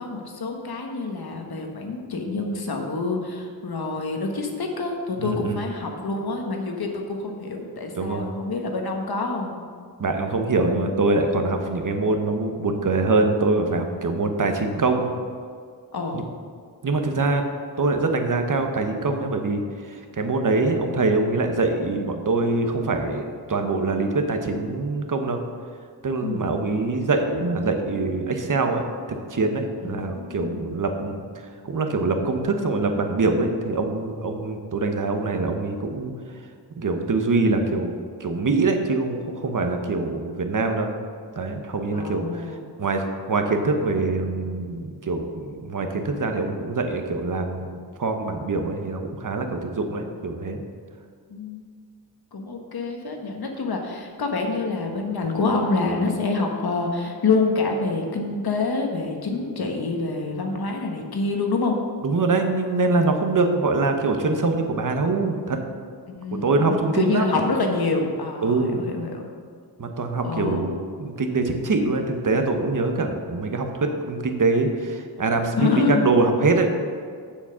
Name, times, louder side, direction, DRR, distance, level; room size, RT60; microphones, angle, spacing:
voice 1, 0.0-9.6 15.9-16.3 26.2-26.5 29.8-30.7 41.9-42.6 51.3-51.6 52.3-61.8 66.1-69.3 70.2-70.7 75.6-76.0, left 3 dB, 70° left, 2 dB, 1.3 m, -27 dB
voice 2, 5.2-5.6 8.0-8.3 10.0-15.1 16.1-16.2 16.8-17.4 17.8-25.4 26.0-31.2 31.6-36.1 36.8-40.9 41.4-42.5 42.8-50.6 62.0-65.6 66.4-67.5 68.4-68.8 69.8-76.7, right 3 dB, 50° right, 5 dB, 1.1 m, -24 dB
7.3 x 7.1 x 5.7 m, 2.1 s
wide cardioid pair, 85°, 39 cm